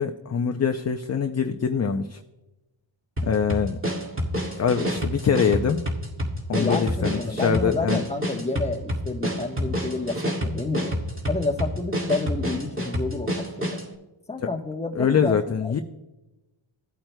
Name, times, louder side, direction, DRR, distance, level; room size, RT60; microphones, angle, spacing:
voice 1, 0.0-2.2 3.2-3.8 4.6-5.9 6.5-8.0 14.9-15.8, left 6 dB, 35° left, 7 dB, 0.5 m, -24 dB
sound 1, 3.2-13.9, equal, 25° right, 2.2 m, -28 dB
voice 2, 6.5-11.0 11.3-13.8 14.3-15.8, left 3 dB, 15° left, 4 dB, 1.0 m, -29 dB
16.5 x 8.8 x 2.2 m, 1.0 s
cardioid pair, 65°, 50 cm